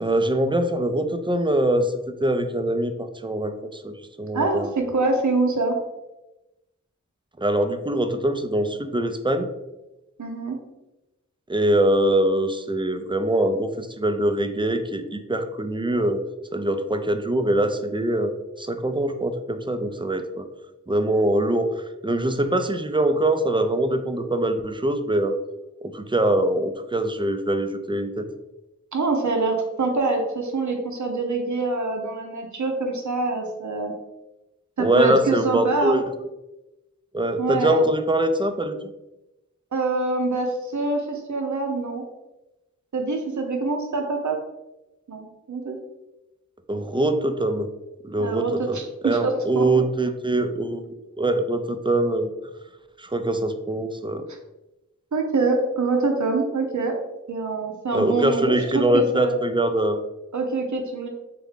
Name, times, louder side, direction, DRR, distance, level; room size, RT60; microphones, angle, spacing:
voice 1, 0.0-4.7 7.4-9.5 11.5-16.2 16.5-20.5 20.9-25.3 25.8-28.3 34.8-36.0 37.1-38.8 46.7-47.7 48.0-52.3 53.0-54.3 57.9-60.0, right 1 dB, 15° right, 8 dB, 0.4 m, -23 dB
voice 2, 4.3-5.8 10.2-10.6 28.9-33.9 34.8-36.0 37.4-37.8 39.7-42.0 42.9-44.4 45.1-45.8 48.2-49.6 54.3-54.4 55.1-56.9 57.3-59.4 60.3-61.1, right 3 dB, 70° right, 2 dB, 0.7 m, -25 dB
3.8 x 3.5 x 3.6 m, 0.97 s
wide cardioid pair, 45°, 30 cm